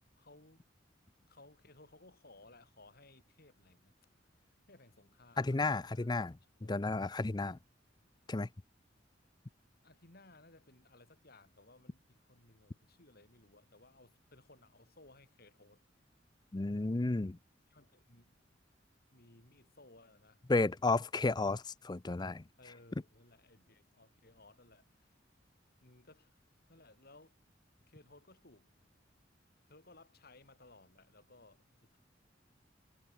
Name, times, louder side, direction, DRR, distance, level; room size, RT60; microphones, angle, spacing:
voice 1, 0.2-0.6 1.2-4.0 4.4-6.1 6.6-6.8 9.8-15.8 17.7-18.5 19.1-20.5 22.6-25.2 25.8-26.4 26.7-27.4 27.8-28.7 29.7-32.0, left 2 dB, 55° left, 7.0 m, -61 dB
voice 2, 5.4-6.4 6.7-7.6 8.3-8.5 16.5-17.4 20.5-22.4, left 3 dB, 25° left, 0.5 m, -32 dB
head